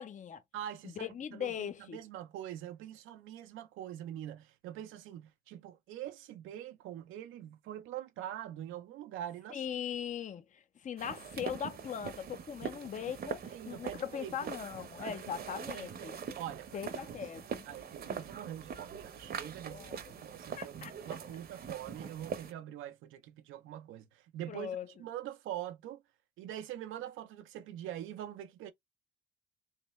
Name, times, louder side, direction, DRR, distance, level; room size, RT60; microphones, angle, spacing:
voice 1, 0.0-0.4 1.0-2.0 9.5-16.2 16.7-17.6 19.7-20.0 20.6-20.9 24.5-24.9, left 8 dB, 40° left, 0.6 m, -40 dB
voice 2, 0.5-9.6 13.5-14.5 15.0-15.2 15.5-26.0 26.4-28.7, right 11 dB, 90° right, 0.6 m, -44 dB
sound 1, 11.0-22.5, right 7 dB, 50° right, 0.8 m, -43 dB
3.3 x 3.3 x 3.0 m
cardioid pair, 90°, 20 cm